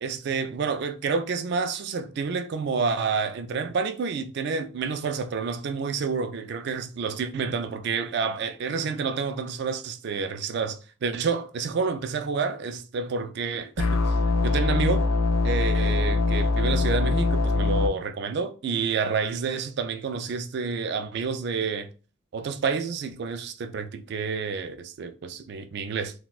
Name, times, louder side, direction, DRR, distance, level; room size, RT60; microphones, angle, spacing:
voice 1, 0.0-14.1 14.4-15.1 15.4-21.9 22.3-26.1, right 5 dB, 50° right, 0.3 m, -29 dB
sound 1, 13.8-17.9, left 3 dB, 85° left, 0.4 m, -23 dB
4.0 x 2.1 x 2.4 m
head